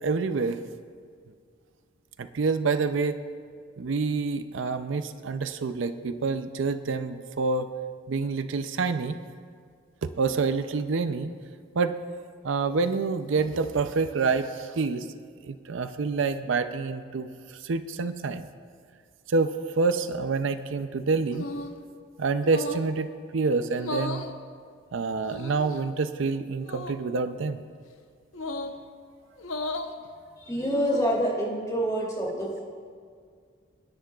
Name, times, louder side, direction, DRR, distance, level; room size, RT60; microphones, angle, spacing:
voice 1, 0.0-0.6 2.2-3.2 3.8-7.7 8.1-9.2 10.0-11.3 11.7-12.0 12.4-15.1 15.4-18.5 19.3-21.5 22.2-23.1 23.3-24.2 24.9-27.6, right 4 dB, 70° right, 10 dB, 0.5 m, -27 dB
sound 1, 21.3-21.8 22.4-22.9 23.7-24.3 25.2-25.8 26.6-27.0 28.3-28.8 29.4-29.9 30.6-31.2, left 2 dB, 80° left, 0.9 m, -35 dB
voice 2, 30.4-32.6, equal, 15° left, -4 dB, 2.8 m, -27 dB
29.0 x 10.5 x 2.4 m, 2.1 s
head